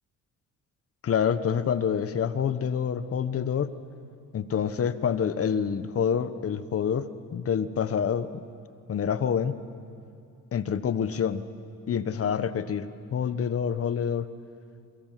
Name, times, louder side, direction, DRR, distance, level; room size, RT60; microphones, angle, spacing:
voice 1, 1.0-3.7 4.3-8.4 8.9-9.6 10.5-11.4 11.9-14.3, left 7 dB, 50° left, 12 dB, 1.2 m, -27 dB
28.5 x 23.5 x 7.6 m, 2.5 s
cardioid pair, 90°, 30 cm